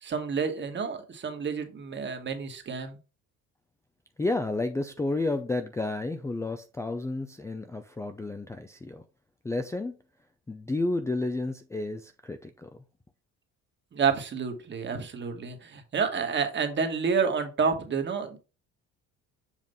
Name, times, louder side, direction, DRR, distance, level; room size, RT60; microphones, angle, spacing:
voice 1, 0.0-3.0 13.9-18.4, right 5 dB, 35° right, 1.4 m, -29 dB
voice 2, 4.2-9.0 9.4-9.9 10.5-12.7, left 2 dB, 10° left, 0.4 m, -31 dB
7.4 x 2.5 x 5.3 m
cardioid pair, 110°, 32 cm